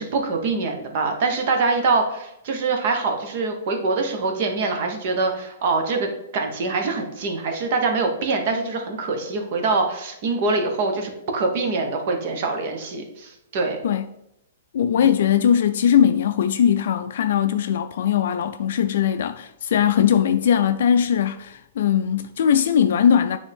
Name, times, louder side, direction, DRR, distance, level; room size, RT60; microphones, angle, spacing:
voice 1, 0.0-13.8 15.0-15.1, right 3 dB, 40° right, 1.1 m, -24 dB
voice 2, 14.7-23.4, left 9 dB, 60° left, 0.3 m, -20 dB
9.1 x 3.5 x 3.5 m
hypercardioid pair, 165°, 0 cm